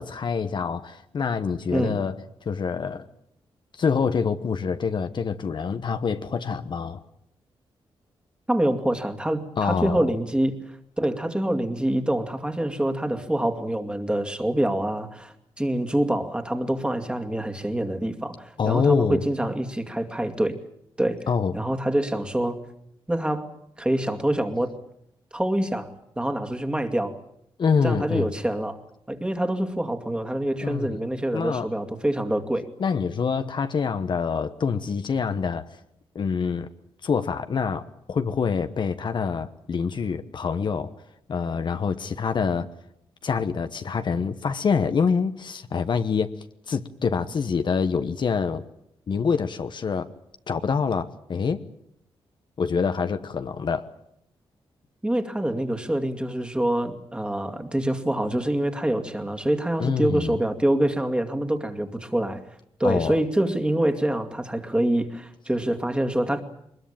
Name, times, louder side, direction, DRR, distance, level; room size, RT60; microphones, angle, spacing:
voice 1, 0.0-2.2 2.4-3.0 3.7-7.0 9.6-10.1 18.6-19.2 21.3-21.5 27.6-28.3 30.6-31.0 31.3-31.7 32.8-35.8 36.1-36.7 37.0-40.9 41.3-42.7 43.2-46.3 46.7-48.6 49.1-50.1 50.5-51.6 52.6-53.9 59.8-60.4 62.8-63.2, left 5 dB, 55° left, 9 dB, 1.1 m, -26 dB
voice 2, 1.7-2.0 8.5-20.6 21.0-21.3 21.5-22.6 23.1-23.5 23.8-24.7 25.3-25.9 26.2-27.2 27.8-28.8 29.1-32.6 55.0-62.4 62.8-66.4, right 1 dB, 10° right, 5 dB, 2.3 m, -26 dB
22.0 x 21.0 x 8.8 m, 0.74 s
cardioid pair, 90°, 10 cm